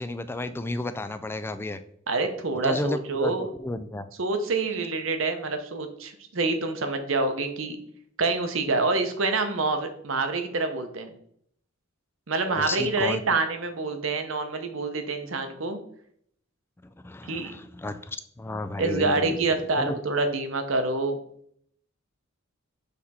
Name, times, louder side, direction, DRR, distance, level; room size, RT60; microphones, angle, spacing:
voice 1, 0.0-1.8 2.6-4.1 12.6-13.2 17.0-19.4 19.8-20.0, left 2 dB, 10° left, 11 dB, 0.3 m, -32 dB
voice 2, 2.1-3.5 4.2-7.8 8.2-11.1 12.3-15.8 17.3-17.5 18.8-21.2, right 3 dB, 65° right, 7 dB, 0.9 m, -27 dB
6.6 x 3.5 x 4.2 m, 0.66 s
head